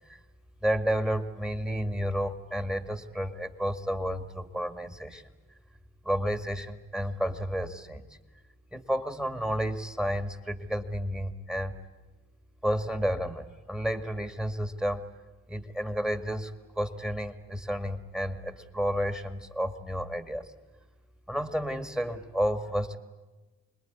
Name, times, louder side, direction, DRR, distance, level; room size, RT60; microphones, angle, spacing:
voice 1, 0.6-5.2 6.0-8.1 8.7-11.8 12.6-15.1 15.5-20.5 21.3-23.0, equal, ahead, 9 dB, 1.8 m, -31 dB
26.0 x 21.0 x 9.4 m, 1.2 s
cardioid pair, 90°, 30 cm